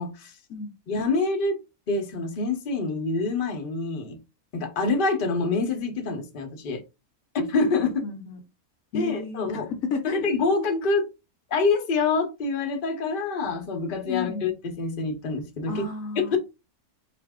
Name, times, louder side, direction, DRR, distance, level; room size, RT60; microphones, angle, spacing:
voice 1, 0.0-0.3 0.9-1.6 1.9-4.2 4.5-6.8 7.3-8.0 8.9-9.7 10.1-11.1 11.5-15.8 16.2-16.4, left 3 dB, 40° left, 0.9 m, -26 dB
voice 2, 8.0-8.4 8.9-10.2 14.1-14.5 15.7-16.4, left 5 dB, 65° left, 1.0 m, -32 dB
4.2 x 2.5 x 3.5 m
omnidirectional pair, 1.6 m